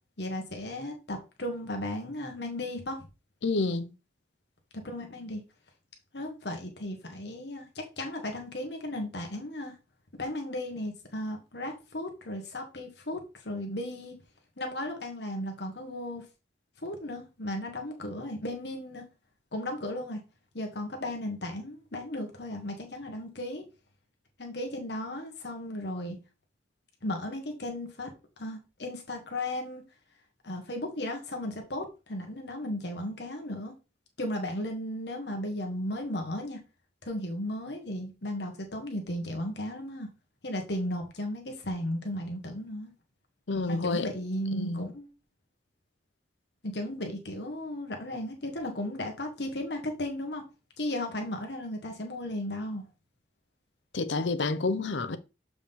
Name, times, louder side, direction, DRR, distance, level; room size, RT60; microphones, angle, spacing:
voice 1, 0.2-3.1 4.7-5.4 6.1-9.8 10.2-14.1 14.6-16.2 16.8-19.0 19.5-20.2 20.5-23.6 24.4-26.2 27.0-28.1 28.4-29.8 30.4-33.7 34.2-36.6 37.0-40.1 40.4-42.9 43.7-45.1 46.6-50.4 50.8-52.8, left 1 dB, 65° left, 1.7 m, -35 dB
voice 2, 3.4-3.9 43.5-44.0 44.5-44.9 53.9-55.2, left 3 dB, 80° left, 0.7 m, -29 dB
7.1 x 5.0 x 3.8 m
head